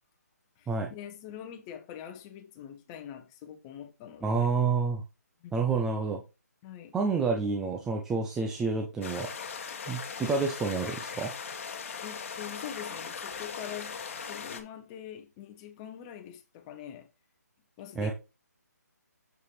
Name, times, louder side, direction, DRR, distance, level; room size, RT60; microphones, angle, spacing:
voice 1, 0.6-4.5 5.4-5.8 6.6-7.0 12.0-17.1 17.8-18.1, left 10 dB, 20° left, 0.9 m, -44 dB
voice 2, 4.2-5.0 5.5-6.2 6.9-9.3 9.9-11.3 18.0-18.1, right 4 dB, 5° right, 0.4 m, -29 dB
sound 1, 9.0-14.6, left 6 dB, 45° left, 1.2 m, -39 dB
7.0 x 6.5 x 3.2 m
hypercardioid pair, 160°, 9 cm